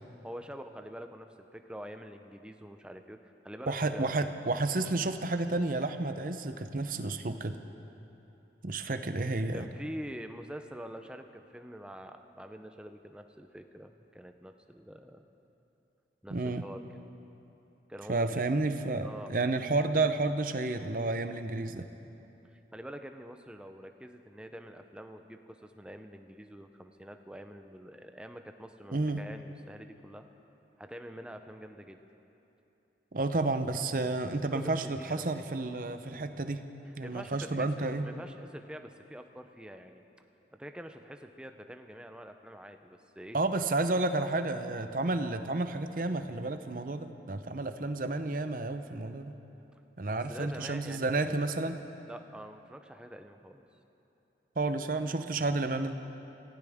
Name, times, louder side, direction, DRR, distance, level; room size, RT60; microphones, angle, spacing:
voice 1, 0.2-4.4 9.5-15.3 16.2-16.8 17.9-18.5 19.0-19.3 22.5-30.3 30.8-32.0 34.5-35.2 37.0-40.0 40.5-43.4 50.1-51.1 52.1-53.7, equal, 5° right, 6 dB, 0.6 m, -46 dB
voice 2, 3.7-7.6 8.6-9.7 16.3-16.6 18.1-21.9 28.9-29.2 33.1-36.6 37.0-38.1 43.3-49.3 50.0-51.8 54.6-56.0, right 2 dB, 50° right, 9 dB, 0.7 m, -31 dB
25.0 x 15.5 x 3.6 m, 3.0 s
head